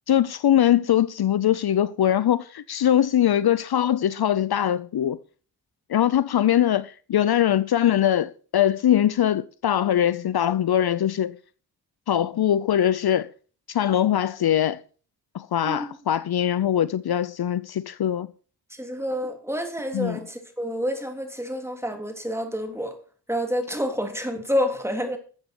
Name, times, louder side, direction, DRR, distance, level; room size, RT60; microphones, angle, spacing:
voice 1, 0.1-5.2 5.9-11.4 12.1-13.3 13.7-14.8 15.3-18.3 19.9-20.2, left 10 dB, 65° left, 0.7 m, -22 dB
voice 2, 18.7-23.0 23.3-25.2, equal, 5° right, 3.3 m, -28 dB
13.5 x 8.0 x 6.0 m
cardioid pair, 85°, 41 cm